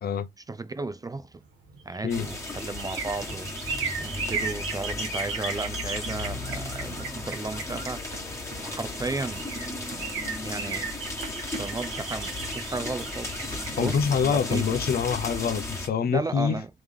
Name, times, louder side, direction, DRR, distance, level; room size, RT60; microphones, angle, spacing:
voice 1, 0.5-1.4 1.8-8.0 8.6-9.5 10.4-10.9 11.4-13.4 13.7-14.0 14.2-14.7 16.1-16.7, right 3 dB, 20° right, 0.4 m, -34 dB
sound 1, 1.7-8.5 9.0-9.1 9.3-15.1 15.5-15.6, right 5 dB, 85° right, 1.2 m, -36 dB
sound 2, 2.1-15.9, left 2 dB, 15° left, 1.4 m, -35 dB
Run, 6.0-11.9, right 4 dB, 55° right, 1.4 m, -47 dB
voice 2, 13.8-16.6, left 7 dB, 50° left, 0.6 m, -25 dB
3.4 x 3.1 x 3.6 m
cardioid pair, 90°, 20 cm